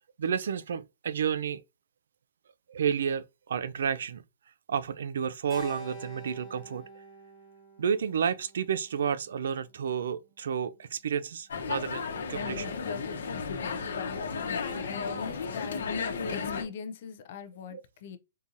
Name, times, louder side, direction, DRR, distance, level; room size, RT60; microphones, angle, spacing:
voice 1, 0.2-1.6 2.7-4.2 4.7-7.0 7.8-12.8 17.7-17.8, right 7 dB, 70° right, 0.3 m, -31 dB
Keyboard (musical), 5.5-9.9, right 1 dB, 10° right, 1.0 m, -47 dB
sound 1, 11.5-16.6, left 5 dB, 80° left, 0.9 m, -33 dB
voice 2, 14.4-18.2, left 6 dB, 40° left, 0.4 m, -42 dB
3.7 x 2.5 x 2.8 m
hypercardioid pair, 170°, 0 cm